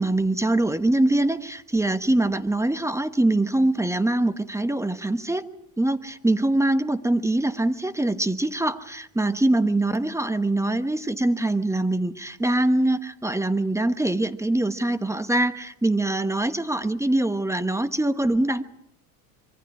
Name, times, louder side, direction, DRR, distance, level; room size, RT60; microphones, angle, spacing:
voice 1, 0.0-5.5 5.8-18.6, right 1 dB, 5° right, 12 dB, 1.1 m, -23 dB
25.0 x 23.5 x 4.9 m, 0.76 s
hypercardioid pair, 80°, 45 cm